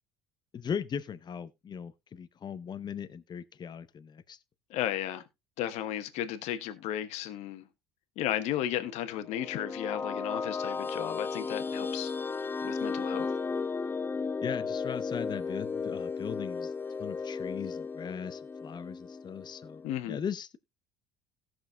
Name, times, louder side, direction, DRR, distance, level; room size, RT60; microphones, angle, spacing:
voice 1, 0.5-4.4 14.4-16.7 17.0-20.6, left 7 dB, 35° left, 0.8 m, -38 dB
voice 2, 4.7-5.2 5.6-7.7 8.2-12.1 12.6-13.3 19.8-20.2, left 12 dB, 65° left, 1.2 m, -34 dB
sound 1, 9.1-19.9, left 5 dB, 15° left, 0.4 m, -35 dB
17.5 x 6.3 x 2.3 m
hypercardioid pair, 70°, 12 cm